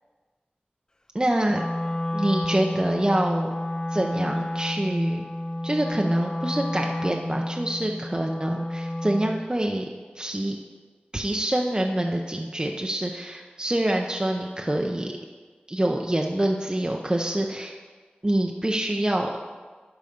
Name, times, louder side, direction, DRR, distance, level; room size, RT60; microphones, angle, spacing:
voice 1, 1.1-1.7 2.1-3.5 3.9-5.3 5.6-9.9 10.1-10.6 11.1-15.1 15.7-17.7 18.2-19.3, right 1 dB, 25° right, 1 dB, 0.6 m, -26 dB
Wind instrument woodwind instrument, 1.5-9.5, left 1 dB, 20° left, 0.3 m, -30 dB
11.5 x 4.1 x 5.2 m, 1.5 s
wide cardioid pair, 45°, 3 cm